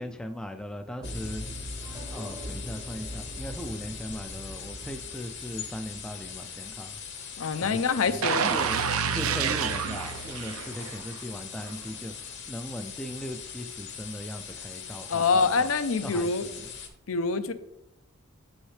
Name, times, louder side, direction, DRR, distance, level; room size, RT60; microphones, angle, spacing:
voice 1, 0.0-1.4 2.1-7.0 7.6-8.8 9.0-12.2 12.5-15.7 16.0-16.7, equal, 5° left, 6 dB, 0.3 m, -38 dB
sound 1, 1.0-16.9, left 7 dB, 55° left, 1.0 m, -41 dB
sound 2, 1.0-7.0, equal, 20° right, 0.7 m, -41 dB
voice 2, 7.4-8.5 15.1-16.5 17.1-17.5, left 4 dB, 70° left, 12 dB, 0.6 m, -25 dB
sound 3, 8.2-11.2 11.6-11.7, right 7 dB, 80° right, 0.6 m, -28 dB
8.0 x 6.2 x 3.2 m, 0.85 s
head